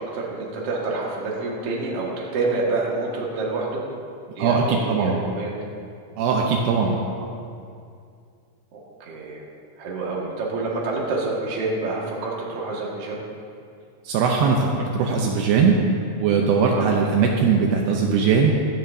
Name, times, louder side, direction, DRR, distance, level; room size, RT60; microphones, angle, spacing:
voice 1, 0.0-3.8 4.4-5.5 7.0-7.3 8.7-9.4 9.8-13.2 16.7-16.9, right 3 dB, 50° right, -4 dB, 2.1 m, -28 dB
voice 2, 4.4-5.2 6.2-7.0 14.0-15.8 16.2-18.5, right 5 dB, 75° right, 0 dB, 2.7 m, -20 dB
16.5 x 13.0 x 2.7 m, 2.4 s
omnidirectional pair, 5.0 m